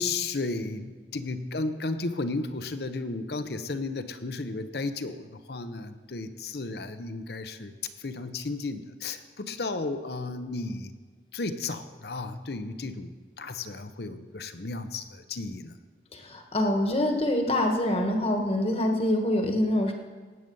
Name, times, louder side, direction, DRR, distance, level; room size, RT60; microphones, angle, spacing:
voice 1, 0.0-7.7 8.0-10.9 11.3-15.7, left 3 dB, 60° left, 10 dB, 0.8 m, -34 dB
voice 2, 16.1-19.9, left 1 dB, 35° left, 3 dB, 1.4 m, -25 dB
18.0 x 7.9 x 5.4 m, 1.4 s
head